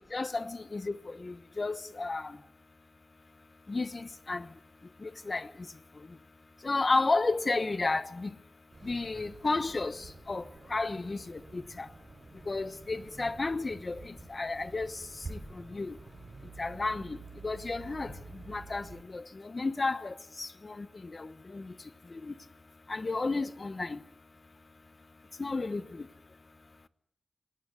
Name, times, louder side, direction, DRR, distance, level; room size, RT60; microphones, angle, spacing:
voice 1, 0.1-2.4 3.7-4.4 5.0-5.5 6.6-8.3 8.8-10.4 10.7-11.9 12.5-14.9 15.3-15.9 16.6-17.2 17.4-18.1 18.5-18.8 19.1-20.9 21.1-21.7 22.2-22.3 22.9-24.0 25.4-26.1, left 3 dB, 45° left, 1.1 m, -32 dB
sound 1, 8.7-19.0, right 3 dB, 60° right, 5.2 m, -49 dB
20.5 x 18.0 x 8.3 m
wide cardioid pair, 70°, 0 cm